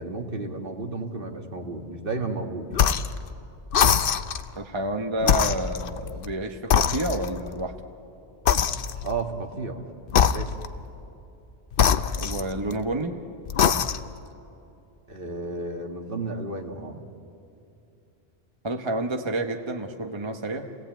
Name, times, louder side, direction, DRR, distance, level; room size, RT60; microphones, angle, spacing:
voice 1, 0.0-2.8 9.0-9.8 10.3-10.5 15.1-17.1, right 3 dB, 55° right, 3 dB, 2.0 m, -32 dB
sound 1, 2.7-3.2 3.7-4.5 5.2-6.3 6.7-7.5 8.5-9.2 10.1-10.8 11.7-12.9 13.5-14.2, left 8 dB, 60° left, 0.9 m, -23 dB
voice 2, 4.6-7.7 12.1-13.2 18.6-20.7, right 1 dB, 25° right, 5 dB, 1.0 m, -29 dB
29.0 x 17.5 x 9.1 m, 2.7 s
omnidirectional pair, 1.1 m